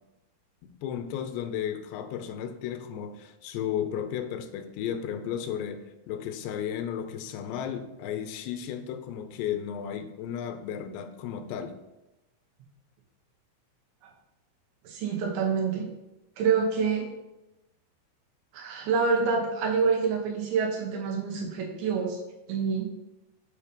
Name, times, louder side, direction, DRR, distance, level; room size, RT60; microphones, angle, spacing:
voice 1, 0.6-5.8 6.1-11.8, left 9 dB, 85° left, 9 dB, 2.7 m, -34 dB
voice 2, 14.8-15.9 16.4-17.1 18.5-22.2 22.5-22.9, right 5 dB, 85° right, 0 dB, 3.3 m, -27 dB
8.1 x 2.8 x 5.0 m, 0.95 s
omnidirectional pair, 4.8 m